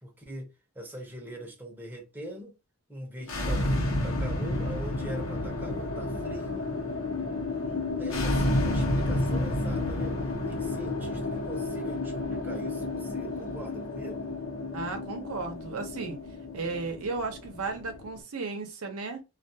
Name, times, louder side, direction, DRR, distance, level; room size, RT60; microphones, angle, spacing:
voice 1, 0.0-2.5 2.9-6.6 7.6-14.3, equal, 10° right, 0.6 m, -41 dB
sound 1, 3.2-18.2, left 2 dB, 65° left, 0.8 m, -31 dB
voice 2, 14.7-16.2 16.5-19.2, right 4 dB, 85° right, 0.6 m, -34 dB
2.3 x 2.2 x 2.6 m
head